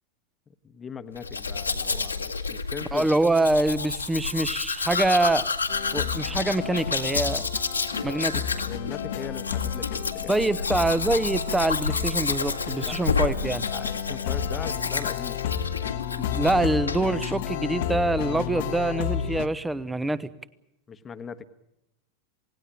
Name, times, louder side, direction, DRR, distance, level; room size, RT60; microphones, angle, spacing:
voice 1, 0.5-3.1 8.6-10.6 12.8-13.0 13.7-15.4 20.9-21.5, left 6 dB, 20° left, 11 dB, 1.3 m, -39 dB
Domestic sounds home sounds, 1.2-16.6 16.9-17.3, left 4 dB, 80° left, 1.9 m, -30 dB
voice 2, 2.9-5.5 5.9-7.4 8.0-8.4 10.3-13.7 16.2-20.3, right 2 dB, 10° right, 17 dB, 1.1 m, -25 dB
sound 1, 5.7-19.5, left 9 dB, 55° left, 1.3 m, -32 dB
28.0 x 18.5 x 8.9 m, 0.87 s
figure-of-eight pair, 90°, 0 cm